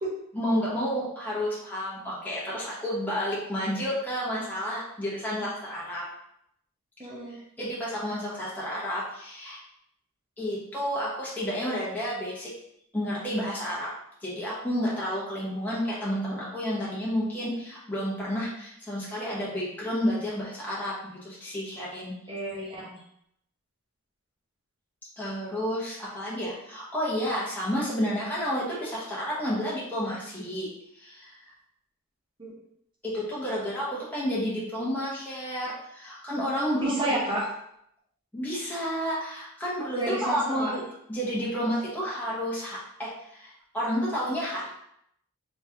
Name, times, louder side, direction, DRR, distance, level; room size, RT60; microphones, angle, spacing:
voice 1, 0.3-6.0 7.3-9.6 10.4-12.5 12.9-13.9 14.2-22.1 25.2-30.7 31.0-31.3 33.0-36.9 38.3-40.8 41.1-44.7, equal, 10° left, -7 dB, 0.9 m, -30 dB
voice 2, 7.0-7.4 22.3-23.0 32.4-32.5 36.8-37.5 40.0-40.7, right 1 dB, 20° right, -5 dB, 1.0 m, -30 dB
3.5 x 3.1 x 2.8 m, 0.74 s
head